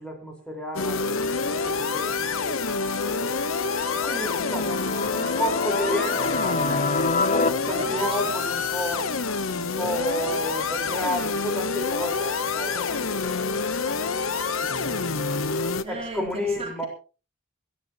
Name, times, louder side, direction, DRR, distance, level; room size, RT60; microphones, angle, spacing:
voice 1, 0.0-2.6 3.0-9.1 9.6-15.2 15.9-16.9, equal, 5° left, 2 dB, 5.0 m, -33 dB
sound 1, 0.7-15.8, left 4 dB, 85° left, 1.1 m, -27 dB
sound 2, 1.9-7.5, left 3 dB, 35° left, 0.6 m, -29 dB
voice 2, 7.6-8.3 15.8-16.3 16.6-16.9, right 2 dB, 30° right, 0 dB, 3.6 m, -36 dB
21.0 x 14.5 x 3.1 m, 0.35 s
head